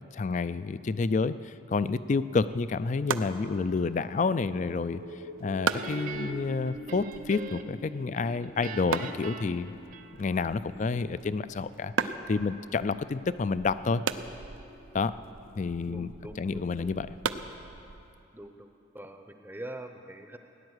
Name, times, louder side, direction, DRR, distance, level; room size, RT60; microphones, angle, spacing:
voice 1, 0.1-5.0 5.4-9.7 10.2-14.0 14.9-15.1 15.6-16.1 16.4-17.1, left 4 dB, 35° left, 15 dB, 0.3 m, -29 dB
sound 1, 2.4-18.2, right 5 dB, 85° right, 0.6 m, -39 dB
sound 2, 2.9-17.2, left 1 dB, 70° left, 2.1 m, -49 dB
Guitar, 5.7-7.8 8.1-10.5, right 4 dB, 40° right, 0.8 m, -41 dB
voice 2, 15.9-16.9 18.3-20.4, right 1 dB, 10° right, 6 dB, 0.6 m, -44 dB
17.0 x 10.5 x 8.0 m, 2.7 s
head